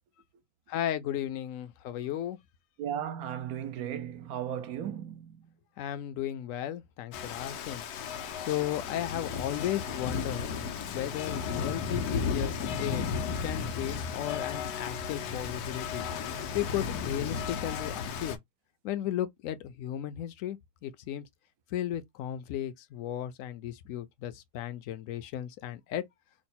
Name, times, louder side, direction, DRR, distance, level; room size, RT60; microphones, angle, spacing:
voice 1, 0.7-2.4 5.8-7.8 8.4-10.6 10.8-16.0 16.5-18.4 18.8-21.3 21.7-26.0, left 11 dB, 70° left, 0.9 m, -35 dB
voice 2, 2.8-5.4, right 9 dB, 75° right, 1.0 m, -35 dB
Rain, 7.1-18.4, left 6 dB, 90° left, 1.2 m, -34 dB
3.0 x 2.1 x 4.1 m
omnidirectional pair, 1.6 m